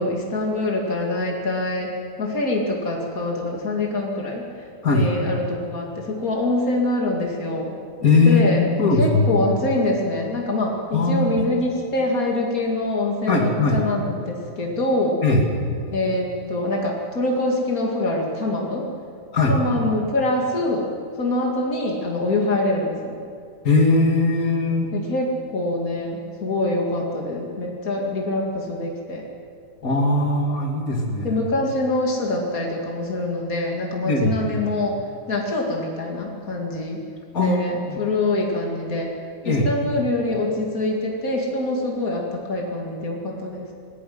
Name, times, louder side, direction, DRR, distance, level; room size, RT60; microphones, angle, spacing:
voice 1, 0.0-1.9 2.2-4.7 4.9-7.7 8.2-8.7 9.0-15.2 15.9-18.8 19.5-20.9 21.2-23.2 24.9-29.2 31.2-35.0 35.3-37.0 37.4-39.1 39.4-43.7, left 2 dB, 80° left, -1 dB, 0.7 m, -24 dB
voice 2, 8.0-9.3 10.9-11.3 13.3-13.8 15.2-15.4 19.3-19.5 23.6-24.9 29.8-31.4 34.0-34.4 37.3-37.6 37.9-38.0 39.4-39.7, left 3 dB, 35° left, 1 dB, 1.4 m, -19 dB
20.0 x 16.0 x 9.4 m, 2.4 s
omnidirectional pair, 5.7 m